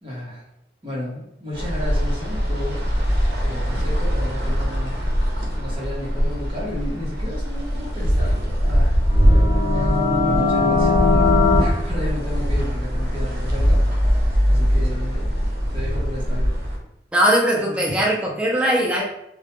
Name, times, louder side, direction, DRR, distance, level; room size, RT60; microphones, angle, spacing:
voice 1, 0.0-0.4 0.8-5.0 5.4-13.8 14.5-16.5, left 1 dB, 30° right, -5 dB, 0.7 m, -33 dB
sound 1, 1.5-16.8, equal, 75° right, 0.6 m, -21 dB
sound 2, 9.0-11.6, left 4 dB, 75° left, 0.5 m, -20 dB
voice 2, 17.1-19.0, right 1 dB, 5° right, -2 dB, 0.4 m, -19 dB
2.2 x 2.1 x 2.9 m, 0.81 s
head